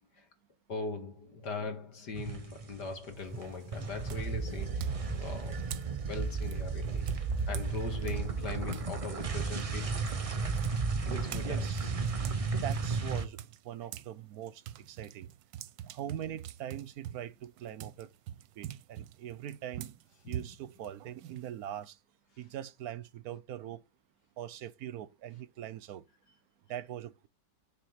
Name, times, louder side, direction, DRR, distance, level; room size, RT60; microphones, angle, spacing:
voice 1, 0.7-5.6 6.1-7.1 7.5-9.9 11.0-11.7 20.2-20.5, left 4 dB, 65° left, 2.5 m, -40 dB
sound 1, 2.1-2.9 3.2-13.3, right 4 dB, 35° right, 0.5 m, -34 dB
sound 2, 3.2-3.5 4.1-8.9 9.2-14.1 14.4-21.8, right 11 dB, 90° right, 1.4 m, -45 dB
voice 2, 11.4-11.9 12.6-15.3 15.9-18.1 18.6-19.9 20.3-22.0 22.4-23.8 24.4-26.0 26.7-27.3, right 11 dB, 65° right, 1.0 m, -42 dB
9.6 x 4.1 x 7.4 m
omnidirectional pair, 1.9 m